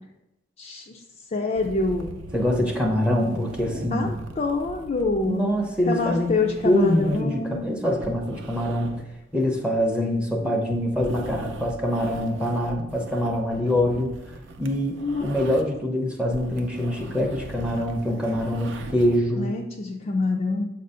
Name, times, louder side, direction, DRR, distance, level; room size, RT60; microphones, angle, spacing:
voice 1, 0.6-1.0 1.3-2.1 3.9-5.5 5.9-7.7 10.4-10.6 15.0-15.2 19.4-20.7, left 3 dB, 35° left, 0 dB, 0.4 m, -26 dB
sound 1, 1.5-15.9 16.2-19.2, right 2 dB, 70° right, 0.6 m, -40 dB
voice 2, 2.3-4.1 5.3-9.0 9.3-14.2 14.6-19.5, equal, 5° right, 1 dB, 0.6 m, -24 dB
7.0 x 2.6 x 5.4 m, 0.92 s
head